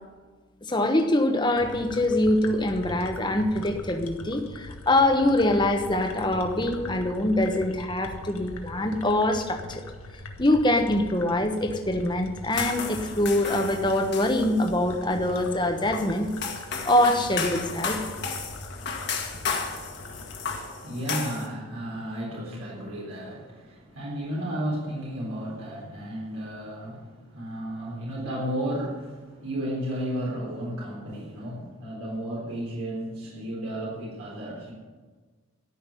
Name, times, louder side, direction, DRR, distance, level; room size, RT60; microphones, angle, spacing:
voice 1, 0.6-9.8 10.4-16.3 16.8-18.0, left 1 dB, 20° left, 5 dB, 1.1 m, -24 dB
sound 1, 1.5-20.6, left 1 dB, 80° left, 1.5 m, -42 dB
sound 2, 12.5-21.5, left 5 dB, 50° left, 1.8 m, -34 dB
voice 2, 19.7-34.7, right 1 dB, 80° right, -5 dB, 3.8 m, -33 dB
13.5 x 6.4 x 9.9 m, 1.4 s
head